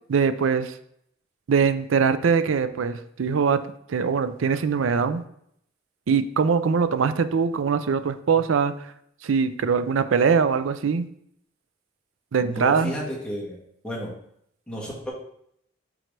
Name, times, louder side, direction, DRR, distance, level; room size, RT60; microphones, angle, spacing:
voice 1, 0.1-0.7 1.5-3.6 3.9-5.2 6.1-8.9 9.2-11.1 12.3-12.9, right 5 dB, 85° right, 12 dB, 0.5 m, -22 dB
voice 2, 12.4-14.1 14.7-15.1, equal, 5° left, -5 dB, 1.6 m, -32 dB
7.5 x 3.9 x 3.3 m, 0.71 s
head